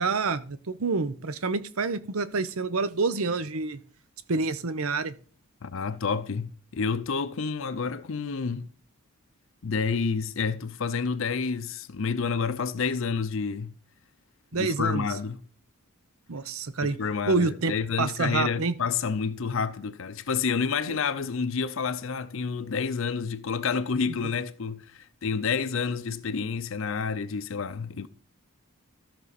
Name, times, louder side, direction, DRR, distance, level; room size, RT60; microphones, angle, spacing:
voice 1, 0.0-3.8 4.3-5.1 14.5-15.0 16.3-17.0 17.3-17.7 18.0-18.8 20.9-21.0, right 4 dB, 75° right, 0.8 m, -27 dB
voice 2, 5.6-8.7 9.6-13.7 14.5-15.4 16.8-28.1, left 5 dB, 60° left, 0.5 m, -29 dB
13.5 x 6.2 x 4.2 m
head